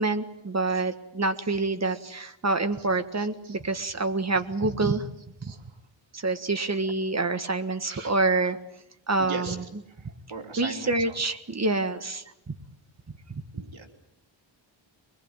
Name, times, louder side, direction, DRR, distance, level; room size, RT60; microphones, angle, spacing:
voice 1, 0.0-5.0 5.4-5.5 6.1-8.6 9.1-9.6 10.6-12.6 13.3-13.4, right 3 dB, 35° right, 8 dB, 1.6 m, -27 dB
voice 2, 3.2-3.6 5.4-5.6 7.9-8.2 9.2-9.6 10.3-10.9 13.5-13.9, right 4 dB, 90° right, 2 dB, 3.6 m, -38 dB
24.5 x 21.0 x 9.0 m, 0.85 s
wide cardioid pair, 135°, 46 cm